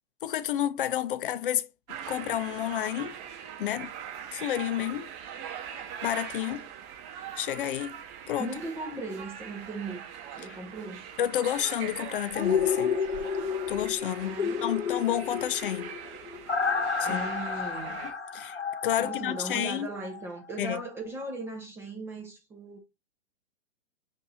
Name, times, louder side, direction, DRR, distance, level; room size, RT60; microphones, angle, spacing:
voice 1, 0.2-1.7 2.1-3.1 3.6-3.9 4.3-5.1 6.0-6.6 7.4-8.0 8.3-8.5 8.9-9.0 10.4-10.6 11.2-13.0 13.7-15.9 17.0-17.2 18.3-18.6 18.8-19.9 20.6-20.8, left 11 dB, 50° left, 0.5 m, -30 dB
sound 1, 1.9-18.1, right 9 dB, 35° right, 1.4 m, -42 dB
voice 2, 8.4-10.0 10.4-11.1 14.2-14.7 17.0-18.0 19.0-22.8, right 2 dB, 10° right, 0.4 m, -38 dB
sound 2, 12.3-20.2 20.6-20.7, left 6 dB, 85° left, 0.9 m, -31 dB
6.8 x 2.6 x 2.7 m
figure-of-eight pair, 115°, 34 cm